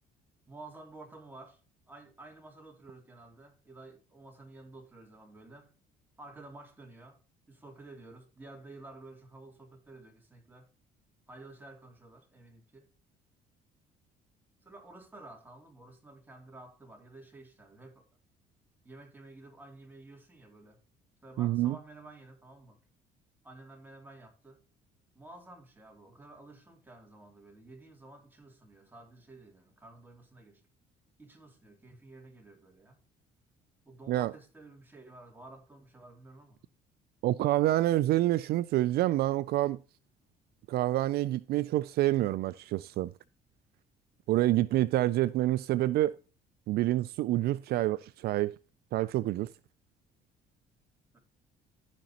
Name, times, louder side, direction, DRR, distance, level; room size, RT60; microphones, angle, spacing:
voice 1, 0.5-1.6 1.9-5.7 6.2-7.2 7.5-10.7 11.3-12.9 14.6-18.1 18.8-20.8 21.2-22.9 23.4-24.6 25.1-30.6 31.2-33.0 33.9-36.6 51.1-51.2, right 2 dB, 10° right, 2.8 m, -52 dB
voice 2, 21.4-21.8 34.1-34.3 37.2-39.8 40.7-43.1 44.3-46.2 46.7-48.5 48.9-49.5, right 15 dB, 70° right, 0.4 m, -27 dB
14.5 x 5.2 x 2.9 m
cardioid pair, 110°, 17 cm